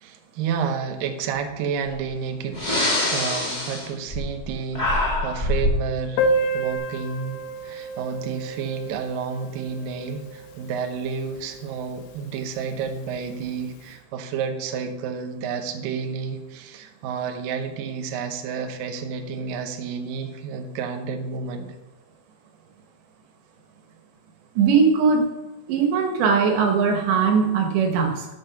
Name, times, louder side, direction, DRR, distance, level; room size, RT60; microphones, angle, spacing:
voice 1, 0.0-2.6 2.9-6.3 6.5-21.7, right 6 dB, 90° right, 5 dB, 1.9 m, -30 dB
Breathing, 1.9-2.0 2.5-4.5 4.7-5.8, left 1 dB, 20° left, 1.2 m, -24 dB
Piano, 6.2-11.5 11.8-11.9 12.1-12.3 12.6-12.7 13.5-13.6, right 1 dB, 85° left, 3.3 m, -29 dB
voice 2, 24.6-25.3 25.7-28.3, right 5 dB, 75° right, 3 dB, 3.3 m, -20 dB
7.9 x 7.3 x 6.6 m, 0.99 s
omnidirectional pair, 5.4 m